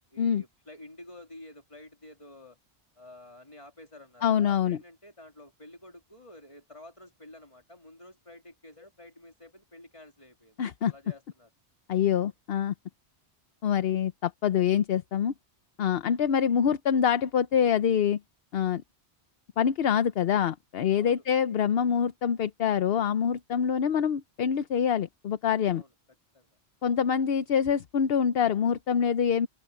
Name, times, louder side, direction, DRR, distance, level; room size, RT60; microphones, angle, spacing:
voice 1, 0.1-2.6 3.0-10.6 10.9-11.5 20.9-21.2 25.7-25.9 26.3-26.5, left 1 dB, 30° left, 3.3 m, -50 dB
voice 2, 4.2-4.8 10.6-10.9 11.9-12.7 13.6-15.3 15.8-18.2 18.5-18.8 19.6-25.8 26.8-29.5, left 8 dB, 65° left, 0.9 m, -25 dB
open air
omnidirectional pair, 1.1 m